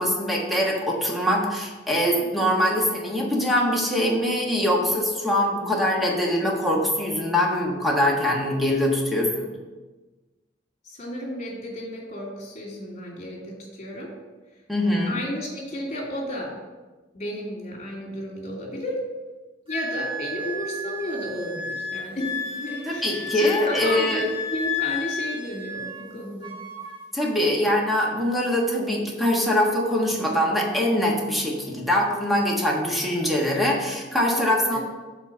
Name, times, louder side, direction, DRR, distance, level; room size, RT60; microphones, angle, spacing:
voice 1, 0.0-9.5 14.7-15.2 22.9-24.2 27.1-34.8, left 1 dB, ahead, -2 dB, 1.3 m, -23 dB
voice 2, 2.2-2.5 10.8-14.1 15.1-16.5 17.1-19.0 19.7-26.5 34.7-34.8, equal, 40° left, -3 dB, 2.4 m, -33 dB
Wind instrument woodwind instrument, 19.7-26.1 26.4-27.0, left 3 dB, 30° right, 1.2 m, -32 dB
7.2 x 4.1 x 6.4 m, 1.2 s
head